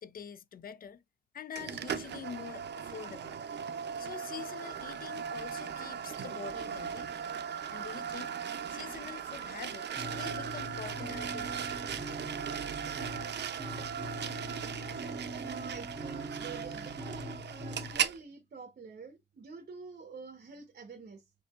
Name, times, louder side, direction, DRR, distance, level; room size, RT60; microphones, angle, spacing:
voice 1, 0.0-1.0 1.3-3.4 4.0-7.1 7.7-8.3 8.7-11.6, left 8 dB, 55° left, 0.4 m, -45 dB
sound 1, 1.6-18.2, right 8 dB, 80° right, 0.5 m, -38 dB
sound 2, 10.0-18.0, right 1 dB, 30° right, 1.3 m, -42 dB
voice 2, 15.3-21.2, right 5 dB, 60° right, 0.9 m, -47 dB
6.5 x 2.7 x 2.3 m
wide cardioid pair, 150°, 17 cm